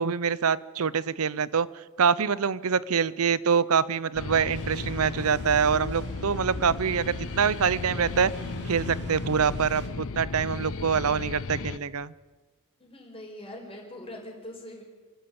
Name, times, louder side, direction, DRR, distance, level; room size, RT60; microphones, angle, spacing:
voice 1, 0.0-1.7 2.0-8.3 8.7-12.1, right 6 dB, 70° right, 19 dB, 0.7 m, -25 dB
sound 1, 4.1-11.8, left 4 dB, 65° left, 0.7 m, -35 dB
sound 2, 4.5-9.9, right 1 dB, 55° right, 2.7 m, -42 dB
voice 2, 12.8-14.8, left 1 dB, 25° left, 0 dB, 5.4 m, -42 dB
27.5 x 12.5 x 8.7 m, 1.3 s
head